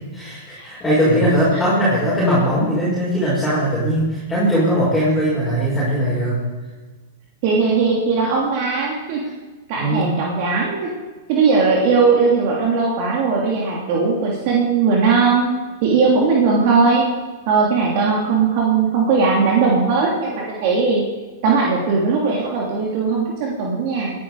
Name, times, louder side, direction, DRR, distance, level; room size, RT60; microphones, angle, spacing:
voice 1, 0.1-6.4 9.8-10.1, equal, 5° left, -9 dB, 6.1 m, -19 dB
voice 2, 7.4-9.2 9.7-10.9 11.3-15.5 15.8-17.0 17.5-21.0 21.4-24.1, right 4 dB, 55° right, -2 dB, 3.2 m, -18 dB
20.5 x 11.0 x 5.0 m, 1.3 s
hypercardioid pair, 125°, 0 cm